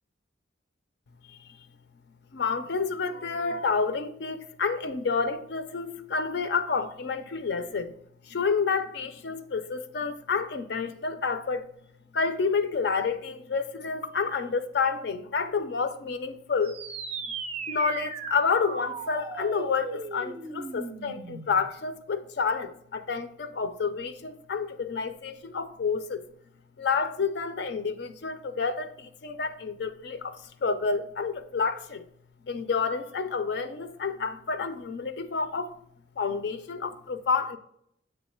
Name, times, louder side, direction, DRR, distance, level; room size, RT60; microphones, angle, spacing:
voice 1, 2.3-7.9 8.3-11.7 12.1-16.8 17.7-26.2 26.8-32.0 32.5-35.8 36.2-37.6, left 5 dB, 60° left, 0.4 m, -29 dB
sound 1, 16.6-21.7, right 4 dB, 35° right, 0.4 m, -37 dB
7.8 x 3.1 x 4.4 m
head